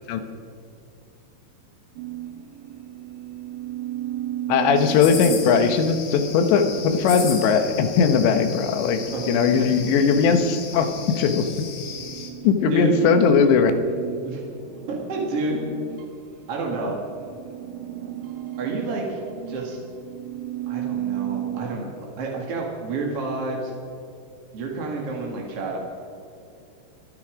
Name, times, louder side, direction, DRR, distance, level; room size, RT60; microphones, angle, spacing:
sound 1, 2.0-16.5 16.9-21.7, right 12 dB, 85° right, 3.1 m, -35 dB
voice 1, 4.5-9.0 9.3-10.9 11.2-11.5 12.4-13.7, left 6 dB, 85° left, 8 dB, 3.3 m, -19 dB
sound 2, 4.7-12.3, left 6 dB, 55° left, 2.1 m, -36 dB
voice 2, 14.9-15.6 16.5-17.0 18.6-19.2 19.5-19.8 20.7-23.7 24.5-25.8, right 3 dB, 50° right, -1 dB, 2.0 m, -29 dB
24.5 x 9.8 x 5.0 m, 2.6 s
omnidirectional pair, 5.0 m